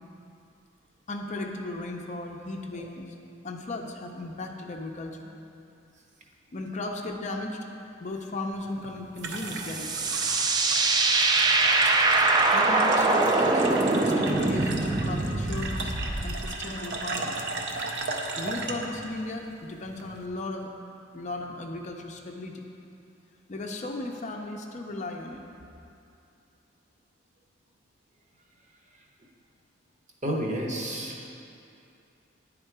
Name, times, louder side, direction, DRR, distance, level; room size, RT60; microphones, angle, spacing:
voice 1, 1.1-3.1 3.4-5.2 6.5-7.6 8.0-9.9 12.5-15.9 16.2-17.3 18.4-20.7 21.1-22.6 23.5-25.5, left 2 dB, 40° left, 2 dB, 0.5 m, -35 dB
sound 1, 8.5-20.3, right 3 dB, 60° right, 0.6 m, -36 dB
sound 2, 9.3-16.5, right 3 dB, 20° right, 0.3 m, -23 dB
voice 2, 30.2-31.4, right 1 dB, 40° right, -1 dB, 0.9 m, -31 dB
10.0 x 3.7 x 4.6 m, 2.6 s
head